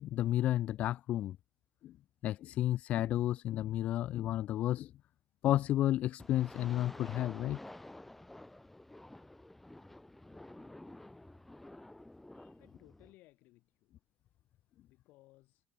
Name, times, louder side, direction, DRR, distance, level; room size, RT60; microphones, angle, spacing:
voice 1, 0.0-1.4 1.8-1.9 2.2-4.9 5.4-7.6, left 13 dB, 55° left, 0.5 m, -32 dB
sound 1, 6.2-13.1, left 1 dB, 5° left, 2.4 m, -51 dB
voice 2, 12.6-13.9 14.8-15.6, left 19 dB, 80° left, 4.8 m, -62 dB
cardioid pair, 145°, 3 cm